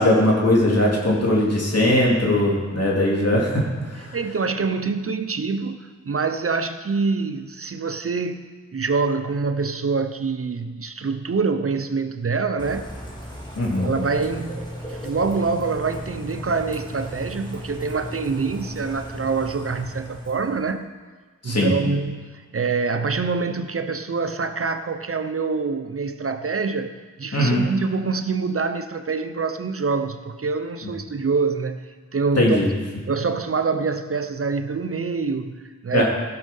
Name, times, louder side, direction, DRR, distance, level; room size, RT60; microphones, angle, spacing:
voice 1, 0.0-4.2 13.5-13.9 21.4-21.7 27.3-27.6 32.4-32.7 35.9-36.0, left 1 dB, 50° left, -3 dB, 3.3 m, -20 dB
voice 2, 4.1-12.9 13.8-20.9 21.4-26.9 27.2-31.8 32.1-32.6 33.1-36.0, right 4 dB, 45° right, 9 dB, 0.7 m, -25 dB
Bird / Rain, 12.6-20.7, equal, 15° left, 2.7 m, -36 dB
16.0 x 6.4 x 5.5 m, 1.4 s
cardioid pair, 50°, 31 cm